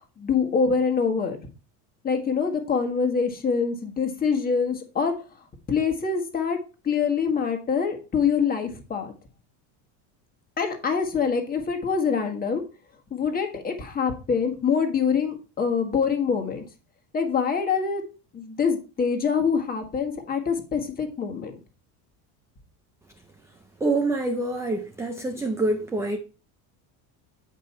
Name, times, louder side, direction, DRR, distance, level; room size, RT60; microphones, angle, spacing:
voice 1, 0.0-1.4 2.0-5.1 5.7-6.6 6.8-9.1 10.6-12.6 13.1-16.6 17.1-18.0 18.3-21.5, left 6 dB, 20° left, 1.5 m, -25 dB
voice 2, 23.8-26.2, right 2 dB, 5° right, 0.4 m, -26 dB
9.1 x 5.3 x 4.3 m
cardioid pair, 160°, 41 cm